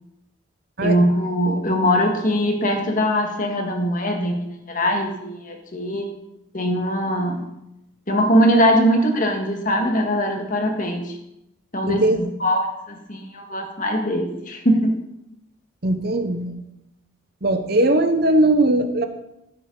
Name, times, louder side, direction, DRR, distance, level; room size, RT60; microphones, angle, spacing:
voice 1, 0.8-6.1 6.5-7.4 8.1-11.1 11.7-12.1 12.4-14.9, equal, 40° left, 3 dB, 1.7 m, -21 dB
voice 2, 11.9-12.2 15.8-16.5 17.4-19.1, right 1 dB, 50° right, 8 dB, 1.0 m, -19 dB
15.0 x 7.7 x 4.0 m, 0.86 s
head